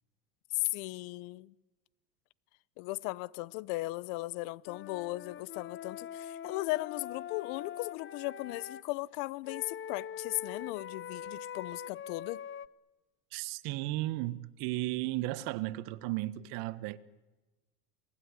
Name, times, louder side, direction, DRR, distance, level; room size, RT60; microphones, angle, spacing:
voice 1, 0.5-1.5 2.8-12.4, left 21 dB, 65° left, 0.9 m, -37 dB
Wind instrument woodwind instrument, 4.7-8.9 9.5-12.7, left 9 dB, 30° left, 1.0 m, -43 dB
voice 2, 13.3-17.0, right 17 dB, 65° right, 1.5 m, -35 dB
28.0 x 19.5 x 9.8 m
supercardioid pair, 100°, 40 cm